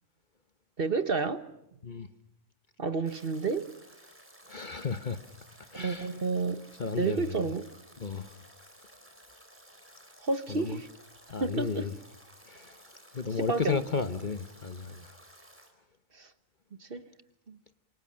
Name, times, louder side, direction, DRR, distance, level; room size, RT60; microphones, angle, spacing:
voice 1, 0.8-1.4 2.8-3.7 5.7-6.6 7.0-7.6 10.2-10.9 11.4-11.9 13.4-13.8 16.1-16.3 16.8-17.0 17.5-17.6, right 4 dB, 45° right, 1.3 m, -30 dB
Stream / Drip / Trickle dribble, 3.0-15.7, equal, 10° right, 4.6 m, -55 dB
voice 2, 4.5-5.2 5.7-6.1 6.8-7.3 8.0-8.4 10.5-10.8 11.3-11.9 12.5-12.8 13.1-15.2, left 5 dB, 40° left, 1.1 m, -33 dB
27.5 x 27.5 x 6.4 m
omnidirectional pair, 1.4 m